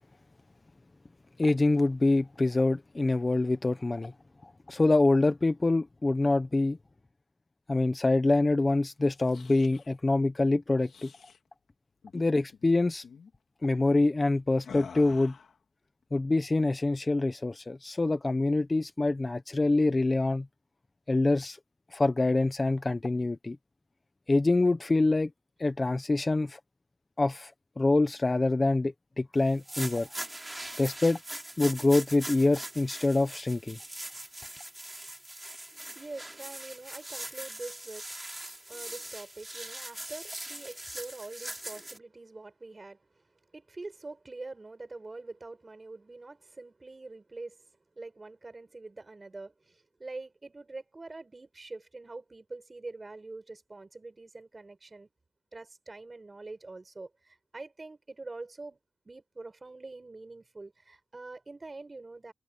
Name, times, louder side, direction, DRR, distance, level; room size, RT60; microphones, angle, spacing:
voice 1, 1.4-4.1 4.4-6.8 7.7-11.1 12.1-13.0 13.6-15.3 16.1-20.5 21.1-21.6 21.9-23.6 24.3-25.3 25.6-26.6 27.2-27.5 27.8-30.1 30.8-31.2 31.6-33.8, left 2 dB, 25° left, 0.9 m, -25 dB
sound 1, 9.0-9.9 10.8-11.4 12.0-12.3 12.5-12.7 13.0-13.3 14.6-15.6, left 6 dB, 90° left, 3.6 m, -48 dB
sound 2, 29.5-42.0, right 1 dB, 10° right, 4.3 m, -41 dB
voice 2, 35.7-38.2 38.7-43.3 43.5-47.7 47.9-55.1 55.5-58.8 59.0-62.3, right 3 dB, 25° right, 6.7 m, -45 dB
wide cardioid pair, 160°, 0 cm